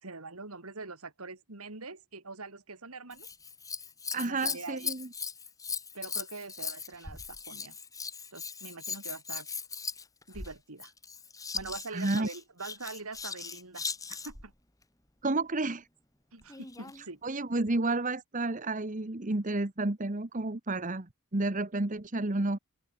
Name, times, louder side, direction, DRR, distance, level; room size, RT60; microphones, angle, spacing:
voice 1, 0.0-3.3 4.2-4.9 5.9-7.8 8.3-9.5 10.3-10.9 11.5-14.5 16.3-17.2, right 3 dB, 80° right, 3.1 m, -44 dB
Scissors, 3.1-14.5 16.4-17.0 17.7-17.8, left 5 dB, 15° left, 2.0 m, -39 dB
voice 2, 4.1-5.1 11.9-12.3 15.2-15.8 17.2-21.1 21.3-22.6, right 2 dB, 35° right, 1.2 m, -31 dB
open air
head